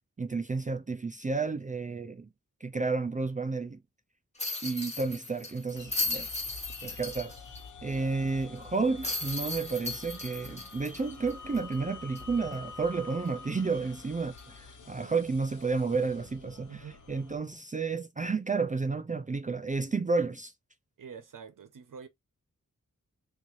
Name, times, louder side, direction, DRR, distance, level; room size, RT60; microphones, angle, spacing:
voice 1, 0.2-2.3 2.6-3.8 4.6-6.3 6.8-7.3 7.8-16.8 17.1-20.5, right 4 dB, 25° right, 0.4 m, -31 dB
sound 1, 4.4-7.6 7.9-8.0 9.0-11.7 12.1-12.2 14.4-14.6, left 2 dB, 20° left, 1.2 m, -36 dB
sound 2, 5.7-17.4, left 4 dB, 70° left, 1.0 m, -47 dB
voice 2, 7.9-8.2 14.8-15.2 16.7-17.0 21.0-22.1, right 7 dB, 80° right, 0.9 m, -47 dB
3.5 x 2.6 x 3.1 m
wide cardioid pair, 75°, 31 cm